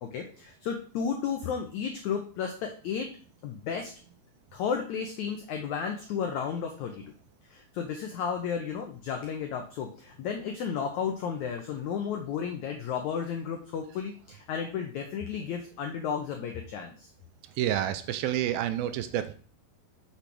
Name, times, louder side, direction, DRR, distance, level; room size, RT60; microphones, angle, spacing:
voice 1, 0.0-3.1 3.4-3.9 4.5-7.0 7.5-17.1, left 7 dB, 90° left, 4 dB, 1.6 m, -33 dB
voice 2, 17.6-19.3, right 11 dB, 80° right, 10 dB, 2.3 m, -29 dB
6.8 x 4.3 x 6.0 m, 0.41 s
omnidirectional pair, 4.5 m